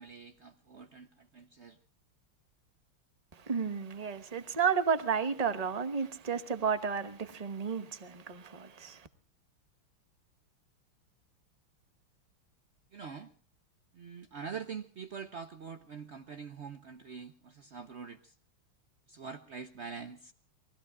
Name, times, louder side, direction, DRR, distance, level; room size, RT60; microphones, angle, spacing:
voice 1, 0.0-1.8 12.9-13.3 13.9-18.3 19.1-20.3, right 6 dB, 65° right, 0.6 m, -44 dB
voice 2, 3.3-9.1, right 6 dB, 30° right, 0.7 m, -32 dB
29.5 x 20.0 x 2.3 m
omnidirectional pair, 2.4 m